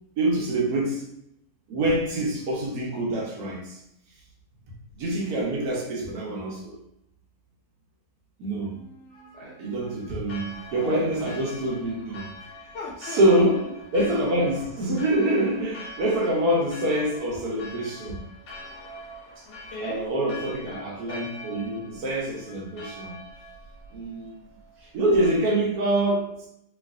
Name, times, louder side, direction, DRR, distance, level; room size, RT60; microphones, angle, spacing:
voice 1, 0.2-1.1 1.7-3.8 5.0-6.8 8.4-8.7 9.1-12.3 13.1-13.7 13.9-18.2 19.8-23.2 23.9-24.3 24.9-26.5, right 1 dB, 65° right, -2 dB, 1.3 m, -25 dB
voice 2, 8.6-9.6 12.7-13.4 19.5-20.1, left 2 dB, 75° left, -3 dB, 1.6 m, -39 dB
Church bell, 10.3-25.4, left 1 dB, 60° left, 1.2 m, -44 dB
3.7 x 3.2 x 2.4 m, 0.76 s
omnidirectional pair, 1.8 m